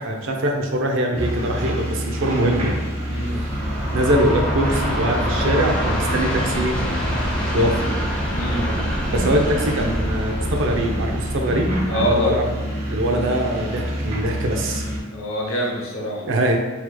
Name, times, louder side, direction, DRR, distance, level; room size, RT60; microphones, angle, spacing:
voice 1, 0.0-2.8 3.4-3.5 3.9-6.7 7.5-7.8 9.1-11.7 12.0-12.5 12.9-14.8 16.2-16.6, right 1 dB, 65° right, 2 dB, 0.5 m, -22 dB
Excavator Digging, 1.1-15.0, equal, 30° right, 0.7 m, -27 dB
voice 2, 3.1-3.4 8.3-8.7 11.9-12.4 15.1-16.2, equal, 70° left, -1 dB, 0.7 m, -25 dB
Train, 3.1-12.3, equal, 5° left, 0.8 m, -26 dB
4.0 x 2.8 x 2.2 m, 1.3 s
head